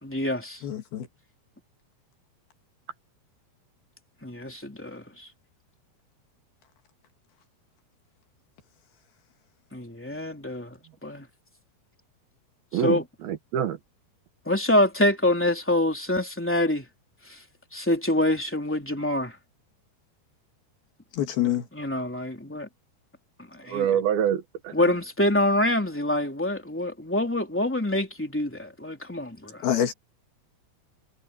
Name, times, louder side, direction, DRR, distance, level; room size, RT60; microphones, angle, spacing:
voice 1, 0.0-0.6 4.2-5.0 9.7-11.3 12.8-13.0 14.5-16.8 17.7-19.3 21.4-21.5 21.7-22.7 23.5-23.9 24.7-29.6, left 1 dB, 5° left, 2.3 m, -26 dB
voice 2, 0.6-1.1 21.1-21.7 29.6-29.9, left 11 dB, 65° left, 3.6 m, -26 dB
voice 3, 12.7-13.8 23.7-24.9, right 9 dB, 65° right, 2.8 m, -26 dB
omnidirectional pair, 5.1 m